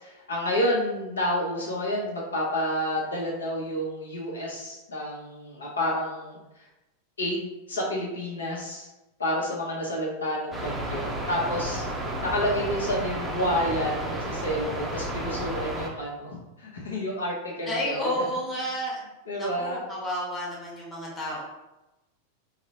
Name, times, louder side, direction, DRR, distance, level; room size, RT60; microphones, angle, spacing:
voice 1, 0.0-6.7 7.2-8.9 9.2-18.1 19.3-19.8, equal, 70° left, -2 dB, 0.8 m, -30 dB
sound 1, 10.5-15.9, right 1 dB, 10° right, 0.6 m, -32 dB
voice 2, 17.7-19.0 19.3-21.4, equal, 20° left, -4 dB, 1.0 m, -31 dB
3.8 x 2.1 x 2.6 m, 1.0 s
figure-of-eight pair, 90°, 0 cm